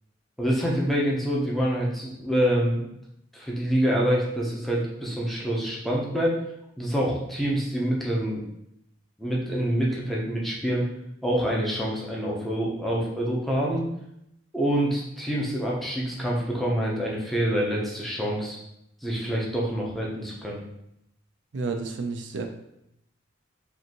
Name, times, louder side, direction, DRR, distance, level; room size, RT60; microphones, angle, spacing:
voice 1, 0.4-2.9 3.3-6.4 6.8-8.4 9.2-10.9 11.2-13.8 14.5-18.6 19.0-20.6, equal, ahead, -4 dB, 0.7 m, -26 dB
voice 2, 21.5-22.4, right 4 dB, 65° right, 4 dB, 0.4 m, -30 dB
5.1 x 2.6 x 2.9 m, 0.80 s
head